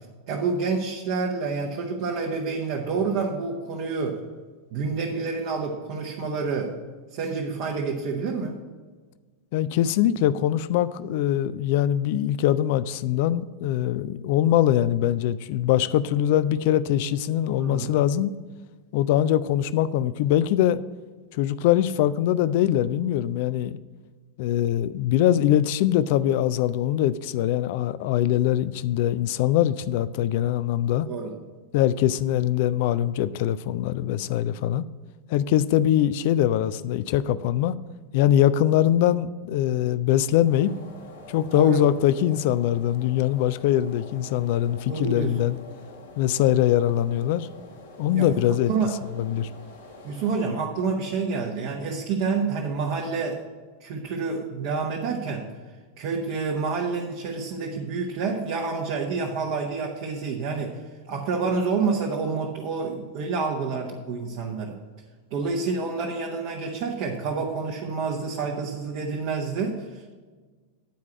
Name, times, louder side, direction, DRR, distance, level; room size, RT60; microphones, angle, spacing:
voice 1, 0.3-4.2 4.7-6.7 7.1-8.6 17.6-17.9 31.0-31.3 41.5-41.8 44.8-45.4 48.1-48.9 50.0-53.4 53.8-55.5 56.0-60.8 61.1-64.7 65.3-70.1, right 4 dB, 45° right, -1 dB, 1.1 m, -28 dB
voice 2, 9.5-18.3 18.9-20.8 21.4-23.8 24.4-31.1 31.7-34.9 35.3-37.7 38.1-40.7 41.3-45.6 46.2-47.5 48.0-48.7 49.2-49.5, left 12 dB, 50° left, 16 dB, 0.4 m, -22 dB
sound 1, 40.4-50.4, left 2 dB, 70° left, 1.7 m, -46 dB
9.2 x 4.7 x 7.7 m, 1.4 s
figure-of-eight pair, 90°, 0 cm